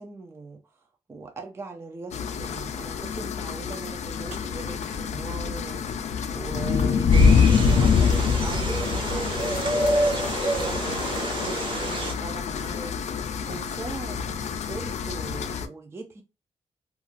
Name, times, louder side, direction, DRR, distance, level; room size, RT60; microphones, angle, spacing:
voice 1, 0.0-6.1 6.3-13.1 13.5-16.2, right 3 dB, 20° right, 0.4 m, -40 dB
sound 1, 2.1-15.7, left 6 dB, 65° left, 0.4 m, -25 dB
sound 2, 4.3-6.5 8.4-8.5 9.3-9.5 10.0-11.5, right 2 dB, 85° right, 0.8 m, -46 dB
sound 3, 7.1-12.1, right 2 dB, 45° right, 0.7 m, -28 dB
2.5 x 2.3 x 2.9 m
wide cardioid pair, 165°, 12 cm